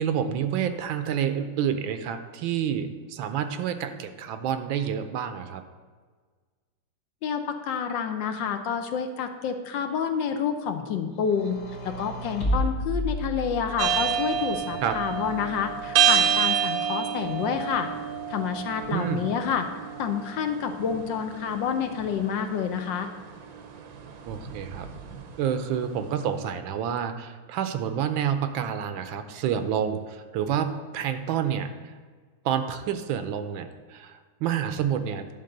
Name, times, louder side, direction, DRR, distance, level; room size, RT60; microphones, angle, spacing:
voice 1, 0.0-5.6 14.8-15.0 18.9-19.2 24.3-24.9 25.4-31.9 32.4-35.3, right 8 dB, 75° right, 9 dB, 1.4 m, -28 dB
voice 2, 7.2-11.6 11.8-17.9 18.3-19.7 20.0-23.1, left 7 dB, 70° left, 7 dB, 1.3 m, -28 dB
sound 1, 11.2-14.0 14.8-15.8, equal, 45° left, 1.4 m, -31 dB
sound 2, 13.8-25.9, right 8 dB, 60° right, 1.0 m, -29 dB
10.5 x 4.0 x 6.5 m, 1.5 s
omnidirectional pair, 2.2 m